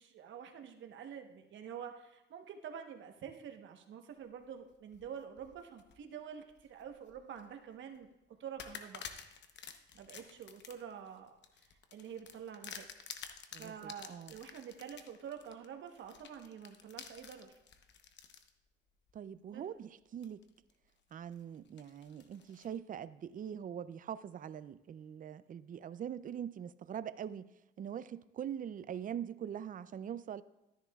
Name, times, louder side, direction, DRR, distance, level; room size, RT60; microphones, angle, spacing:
voice 1, 0.0-8.1 8.4-9.0 9.9-11.3 11.9-12.9 13.6-17.5 19.5-19.6, right 8 dB, 70° right, 1.1 m, -47 dB
sound 1, 4.7-6.0 6.5-7.4 7.9-8.0 8.6-18.5 19.1-19.2 20.2-20.7 21.1-22.8, left 7 dB, 65° left, 0.9 m, -51 dB
voice 2, 13.5-14.3 19.1-20.5 21.1-27.5 27.8-30.4, right 9 dB, 45° right, 0.4 m, -43 dB
13.0 x 10.0 x 2.3 m
cardioid pair, 90°, 20 cm